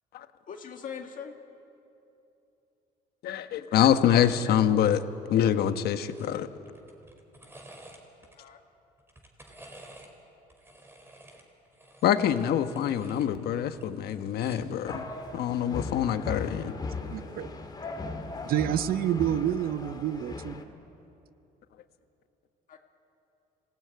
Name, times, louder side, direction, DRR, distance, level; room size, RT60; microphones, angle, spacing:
voice 1, 0.5-1.3 8.4-8.6 22.7-22.8, left 7 dB, 50° left, 1.9 m, -40 dB
voice 2, 3.2-5.0 5.3-6.5 12.0-15.1 15.3-16.7, left 10 dB, 70° left, 1.3 m, -25 dB
sound 1, 6.1-6.3 6.7-8.4 9.0-10.1 10.5-13.3 13.6-14.8 15.9-16.1, right 1 dB, 15° right, 4.3 m, -51 dB
sound 2, 14.9-20.6, left 3 dB, 25° left, 2.3 m, -38 dB
voice 3, 17.1-17.5 18.4-20.6, right 11 dB, 60° right, 0.7 m, -28 dB
25.5 x 18.0 x 9.4 m
cardioid pair, 110°, 17 cm